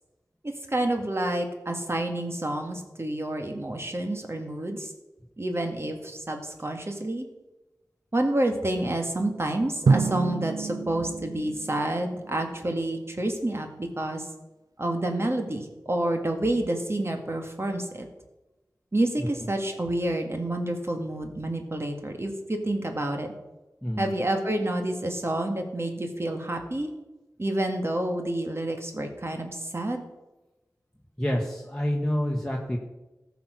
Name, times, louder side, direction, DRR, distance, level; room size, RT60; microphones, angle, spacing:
voice 1, 0.4-4.9 5.4-7.3 8.1-14.3 14.8-18.1 18.9-23.3 24.0-26.9 27.4-30.0, right 1 dB, 40° right, 4 dB, 1.9 m, -29 dB
Drum, 9.9-12.5, right 4 dB, 85° right, 0.5 m, -27 dB
voice 2, 31.2-32.8, equal, 10° left, -2 dB, 1.6 m, -27 dB
14.5 x 6.1 x 6.4 m, 1.0 s
cardioid pair, 40°, 6 cm